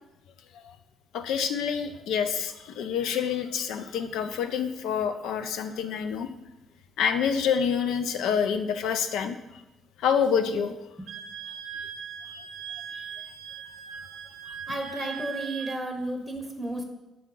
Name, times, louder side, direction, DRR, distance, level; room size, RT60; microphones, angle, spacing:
voice 1, 1.1-6.3 7.0-9.4 10.0-10.7 12.9-13.1, left 7 dB, 85° left, 10 dB, 0.4 m, -27 dB
Wind instrument woodwind instrument, 11.1-15.8, right 7 dB, 85° right, 0.4 m, -39 dB
voice 2, 14.7-16.8, right 1 dB, 5° right, 3 dB, 0.9 m, -33 dB
6.2 x 4.5 x 3.8 m, 0.99 s
cardioid pair, 90°, 0 cm